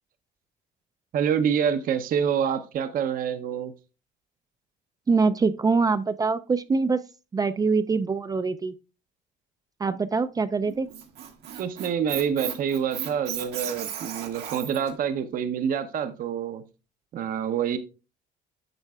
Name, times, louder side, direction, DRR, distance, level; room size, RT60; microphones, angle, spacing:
voice 1, 1.1-3.7 11.6-16.6 17.1-17.8, right 8 dB, 55° right, 9 dB, 0.7 m, -27 dB
voice 2, 5.1-7.0 7.3-8.7 9.8-10.9, right 4 dB, 20° right, 12 dB, 0.3 m, -24 dB
Squeak, 10.7-14.9, right 9 dB, 80° right, 1.4 m, -35 dB
9.0 x 6.5 x 2.3 m, 0.32 s
cardioid pair, 110°, 17 cm